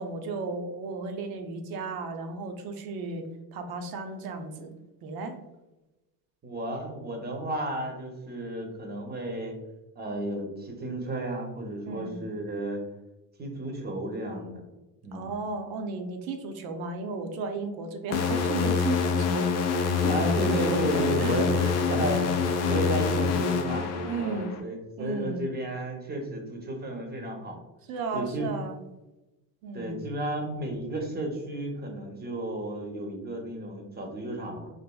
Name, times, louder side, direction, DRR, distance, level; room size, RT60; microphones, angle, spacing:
voice 1, 0.0-3.3 3.5-4.7 5.0-5.4 11.9-12.2 15.1-20.2 20.9-21.8 24.0-24.6 25.0-25.4 27.9-28.8 29.6-30.0, right 3 dB, 60° right, 5 dB, 0.6 m, -34 dB
voice 2, 6.4-9.6 10.0-12.8 13.4-14.6 15.0-15.3 19.9-22.3 22.6-27.6 28.1-28.5 29.7-34.7, right 1 dB, 25° right, 2 dB, 0.7 m, -33 dB
sound 1, 18.1-24.6, left 5 dB, 40° left, 0.4 m, -26 dB
4.0 x 2.5 x 2.3 m, 1.0 s
cardioid pair, 110°, 41 cm